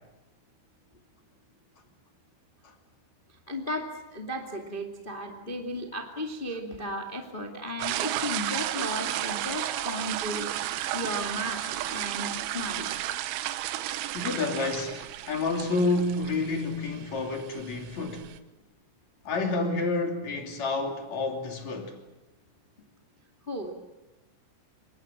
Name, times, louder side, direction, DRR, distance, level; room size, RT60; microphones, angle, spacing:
voice 1, 3.5-10.5 10.9-12.9 23.5-23.7, equal, 60° left, 0.5 m, -35 dB
sound 1, 7.8-18.4, right 13 dB, 80° right, 3.5 m, -33 dB
voice 2, 14.1-18.3 19.3-21.9, left 3 dB, 40° left, 3.5 m, -29 dB
26.0 x 24.0 x 7.4 m
omnidirectional pair, 5.6 m